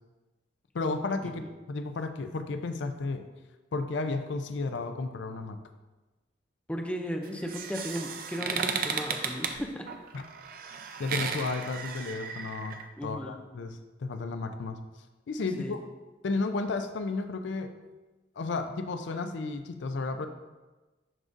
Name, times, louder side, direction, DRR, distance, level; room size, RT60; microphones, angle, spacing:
voice 1, 0.7-3.3 3.7-5.6 10.1-10.2 11.0-14.8 15.3-15.8 16.2-17.7 18.4-20.3, left 3 dB, 75° left, 8 dB, 0.4 m, -33 dB
voice 2, 6.7-9.9 13.0-13.4 15.6-15.8, equal, 5° left, 3 dB, 0.5 m, -35 dB
sound 1, 7.2-12.8, right 6 dB, 50° right, 0.5 m, -35 dB
11.0 x 3.8 x 2.5 m, 1.2 s
head